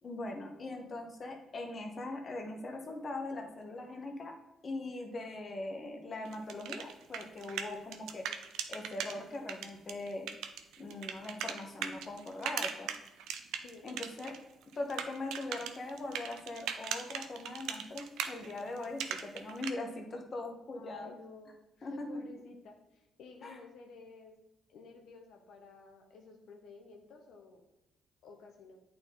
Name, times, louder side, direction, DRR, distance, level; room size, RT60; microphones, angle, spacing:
voice 1, 0.0-4.3 4.6-8.2 8.7-10.3 10.8-12.9 13.8-14.3 14.8-21.1 21.8-22.2 23.4-23.6, left 2 dB, 40° left, 3 dB, 1.2 m, -41 dB
sound 1, 6.3-9.1 9.5-14.4 14.6-19.7, right 8 dB, 85° right, 0.6 m, -39 dB
voice 2, 20.7-24.4 24.7-27.6 28.2-28.8, left 4 dB, 75° left, 2 dB, 1.0 m, -53 dB
8.5 x 4.4 x 3.8 m, 0.96 s
cardioid pair, 90°, 0 cm